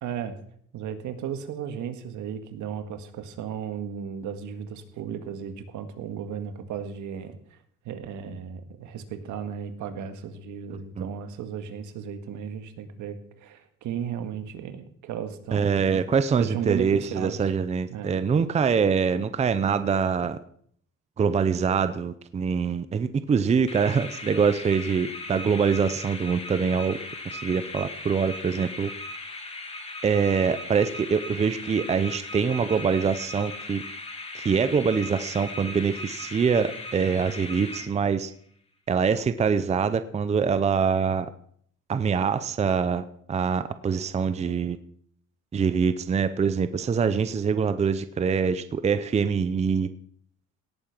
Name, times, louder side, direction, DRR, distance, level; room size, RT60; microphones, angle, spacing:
voice 1, 0.0-0.4 0.7-7.6 7.9-16.0 16.4-17.4 17.9-18.2, right 8 dB, 75° right, 8 dB, 1.9 m, -35 dB
voice 2, 10.7-11.1 15.5-20.4 21.2-27.0 27.3-28.9 30.0-33.8 34.3-38.3 38.9-41.3 41.9-44.8 45.5-49.9, right 6 dB, 20° right, 12 dB, 0.6 m, -24 dB
sound 1, 23.7-38.3, left 2 dB, 20° left, 2.3 m, -38 dB
18.0 x 8.7 x 6.0 m, 0.63 s
cardioid pair, 145°, 30 cm